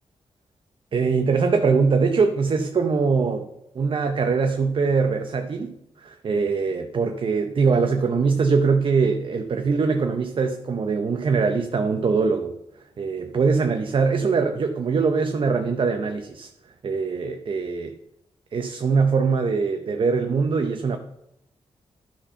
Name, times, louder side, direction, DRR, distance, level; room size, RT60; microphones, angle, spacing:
voice 1, 0.9-3.5 3.7-12.6 13.0-16.5 16.8-17.9 18.5-21.0, right 5 dB, 50° right, 5 dB, 0.7 m, -22 dB
12.0 x 4.4 x 5.6 m, 0.80 s
cardioid pair, 95°, 11 cm